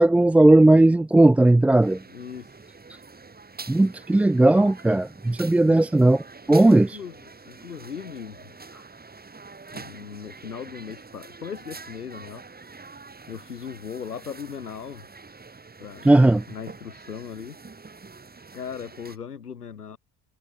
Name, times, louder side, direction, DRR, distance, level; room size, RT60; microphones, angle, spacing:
voice 1, 0.0-2.0 3.7-6.2 6.5-7.0 16.0-16.4, right 2 dB, 5° right, 0.3 m, -17 dB
sound 1, 1.8-19.2, right 4 dB, 20° right, 4.5 m, -45 dB
voice 2, 2.1-2.7 5.7-5.8 6.6-8.5 9.7-12.4 13.3-15.1 15.8-16.1 16.5-17.6 18.5-20.0, left 7 dB, 85° left, 1.6 m, -38 dB
figure-of-eight pair, 50°, 46 cm